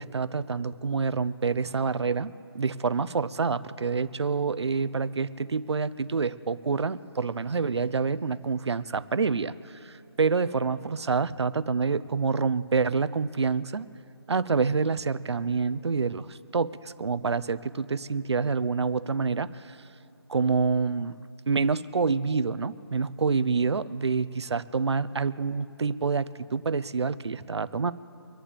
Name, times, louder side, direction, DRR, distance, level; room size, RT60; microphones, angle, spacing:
voice 1, 0.0-13.9 14.3-19.8 20.3-21.1 21.5-27.9, right 4 dB, 80° right, 15 dB, 0.7 m, -27 dB
25.5 x 11.5 x 3.4 m, 2.8 s
hypercardioid pair, 175°, 14 cm